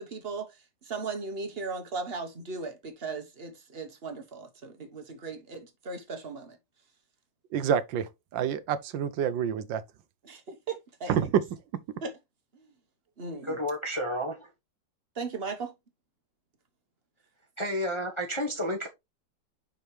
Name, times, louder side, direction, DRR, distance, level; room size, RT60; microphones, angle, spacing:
voice 1, 0.0-6.6 10.2-11.3 12.0-12.1 12.5-12.7 13.2-13.6 15.1-15.7, right 4 dB, 35° right, 1.2 m, -37 dB
voice 2, 7.5-9.8 11.1-11.3, right 8 dB, 80° right, 1.4 m, -28 dB
voice 3, 13.4-14.5 17.6-18.9, equal, 20° left, 0.8 m, -31 dB
5.7 x 5.5 x 3.2 m
omnidirectional pair, 2.0 m